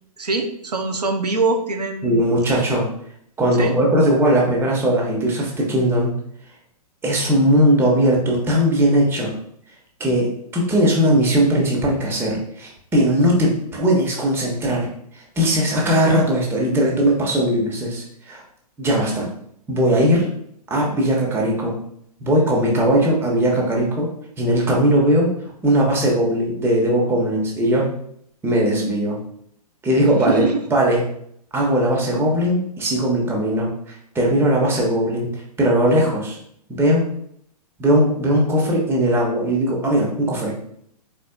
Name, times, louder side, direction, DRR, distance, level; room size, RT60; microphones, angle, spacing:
voice 1, 0.2-2.2 3.6-3.8 30.2-30.6, right 3 dB, 90° right, 4 dB, 0.6 m, -23 dB
voice 2, 2.0-2.9 3.4-6.1 7.0-9.3 10.0-14.9 15.1-18.4 18.8-19.3 19.7-20.3 20.7-21.7 22.2-24.1 24.4-25.3 25.6-27.9 28.4-29.2 29.8-30.4 30.7-31.0 31.5-36.4 36.7-37.0 37.8-40.5, equal, 10° right, -2 dB, 1.1 m, -19 dB
4.2 x 4.2 x 2.2 m, 0.68 s
figure-of-eight pair, 120°, 20 cm